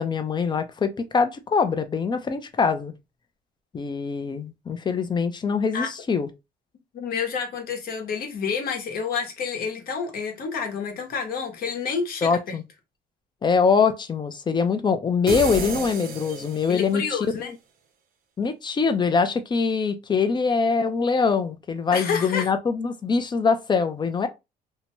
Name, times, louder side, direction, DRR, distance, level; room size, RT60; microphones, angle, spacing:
voice 1, 0.0-2.9 3.7-6.3 12.2-12.6 13.4-17.2 18.4-24.3, left 5 dB, 25° left, 0.5 m, -23 dB
voice 2, 6.9-12.4 16.7-17.5 21.9-22.5, left 6 dB, 60° left, 1.0 m, -29 dB
sound 1, 15.3-17.1, right 5 dB, 60° right, 0.7 m, -31 dB
2.7 x 2.2 x 2.9 m
cardioid pair, 110°, 17 cm